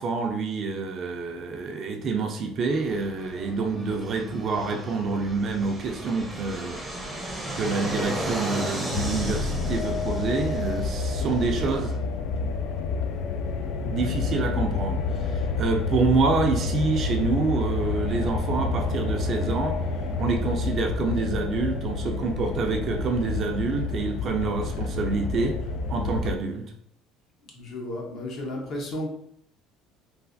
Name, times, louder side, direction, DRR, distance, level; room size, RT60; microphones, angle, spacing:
voice 1, 0.0-6.8 7.5-11.9 13.8-19.8 20.2-25.6 25.9-26.7, right 4 dB, 45° right, 4 dB, 0.4 m, -27 dB
Fixed-wing aircraft airplane, 2.7-12.0, right 1 dB, 5° right, 0.6 m, -35 dB
sound 1, 8.9-26.4, left 4 dB, 65° left, 0.3 m, -29 dB
voice 2, 27.5-29.1, left 1 dB, 50° left, -1 dB, 0.9 m, -33 dB
3.2 x 2.3 x 2.6 m, 0.71 s
cardioid pair, 115°, 0 cm